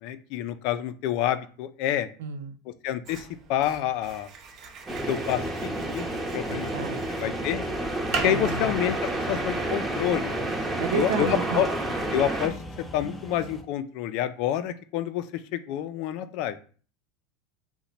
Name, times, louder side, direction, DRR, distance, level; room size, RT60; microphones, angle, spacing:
voice 1, 0.0-2.1 2.8-4.3 5.1-7.7 8.2-9.0 9.3-10.4 10.9-11.7 12.1-12.5 12.9-15.2 15.5-16.6, left 11 dB, 60° left, 12 dB, 0.3 m, -28 dB
voice 2, 2.2-2.6 6.4-7.1 8.2-8.7 10.8-11.6, right 7 dB, 80° right, 10 dB, 0.4 m, -31 dB
sound 1, 3.1-9.4, right 4 dB, 45° right, 0.7 m, -39 dB
sound 2, 4.9-12.5, right 1 dB, 15° right, 0.8 m, -30 dB
sound 3, 7.6-13.6, left 2 dB, 10° left, 0.5 m, -42 dB
2.9 x 2.1 x 4.0 m, 0.41 s
hypercardioid pair, 105°, 0 cm